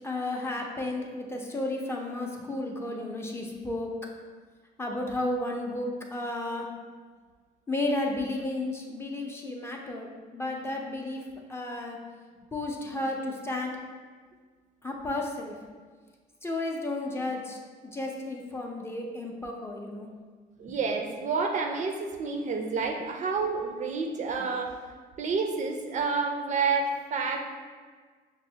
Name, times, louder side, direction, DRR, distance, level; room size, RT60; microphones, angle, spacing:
voice 1, 0.0-3.9 4.8-6.7 7.7-11.2 11.5-12.0 12.5-13.7 14.8-15.5 16.4-17.6 17.9-20.1 20.6-20.7, left 2 dB, 15° left, 0 dB, 0.5 m, -33 dB
voice 2, 20.6-24.8 25.2-27.4, right 4 dB, 45° right, 3 dB, 0.4 m, -29 dB
6.0 x 2.0 x 2.7 m, 1.5 s
cardioid pair, 110°, 17 cm